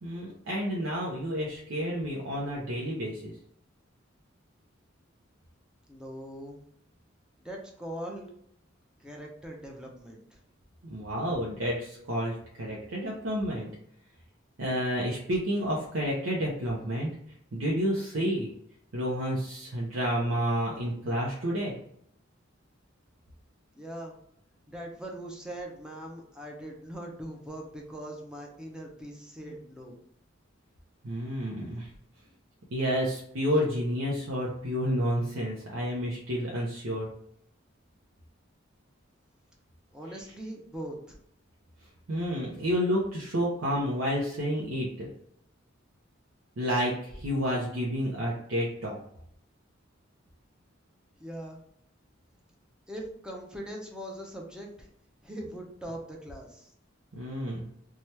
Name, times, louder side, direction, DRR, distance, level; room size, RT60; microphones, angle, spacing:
voice 1, 0.0-3.3 10.8-13.7 14.6-17.1 17.5-18.5 18.9-21.7 31.0-31.9 32.7-37.1 42.1-45.1 46.6-49.0 57.1-57.6, equal, 75° right, -4 dB, 0.7 m, -30 dB
voice 2, 5.9-6.6 7.4-8.3 9.0-10.4 23.7-24.2 24.7-30.0 39.9-41.2 51.2-51.6 52.9-54.9 55.2-56.7, right 1 dB, 5° right, 0 dB, 0.6 m, -41 dB
2.8 x 2.3 x 3.2 m, 0.69 s
head